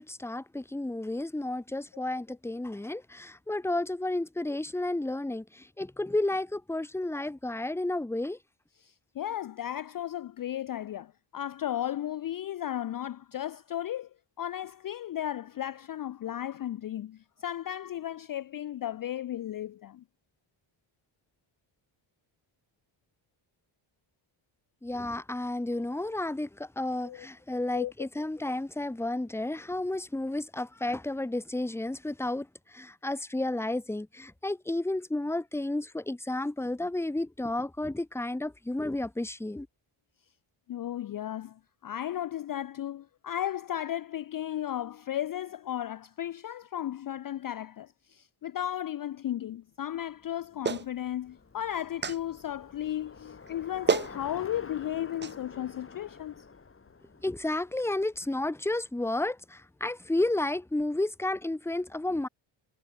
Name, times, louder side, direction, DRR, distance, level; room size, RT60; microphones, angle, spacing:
voice 1, 0.0-8.4 24.8-39.7 57.2-62.3, left 2 dB, 5° left, 0.9 m, -32 dB
voice 2, 8.8-14.1 14.4-20.0 27.0-27.3 27.7-27.9 40.7-56.4, left 11 dB, 45° left, 0.5 m, -35 dB
Bicycle, 50.1-58.4, left 4 dB, 25° left, 2.0 m, -49 dB
Clapping, 50.6-50.9 52.0-52.2 53.5-53.6 53.9-54.1 55.2-55.3, right 6 dB, 25° right, 0.5 m, -28 dB
cardioid pair, 105°, 49 cm